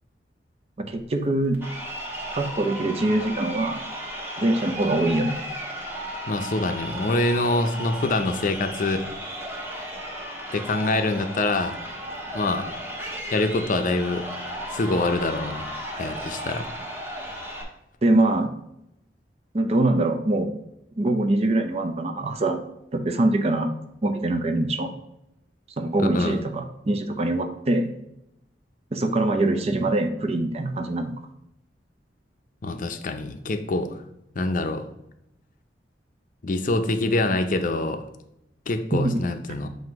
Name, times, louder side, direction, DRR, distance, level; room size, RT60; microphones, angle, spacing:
voice 1, 0.8-1.6 2.3-3.8 4.4-5.3 18.0-18.5 19.5-20.5 21.0-22.6 22.9-23.7 24.0-24.9 25.8-27.9 28.9-31.1 38.9-39.1, right 2 dB, 35° right, 6 dB, 0.5 m, -23 dB
Crowd, 1.5-17.6, equal, 15° right, 1.1 m, -35 dB
voice 2, 6.3-9.1 10.5-11.8 12.3-12.7 13.3-14.2 14.7-16.7 26.0-26.4 32.6-33.9 34.4-34.9 36.4-38.0 38.7-39.7, left 2 dB, 50° left, 8 dB, 0.5 m, -25 dB
7.7 x 2.7 x 4.6 m, 0.83 s
head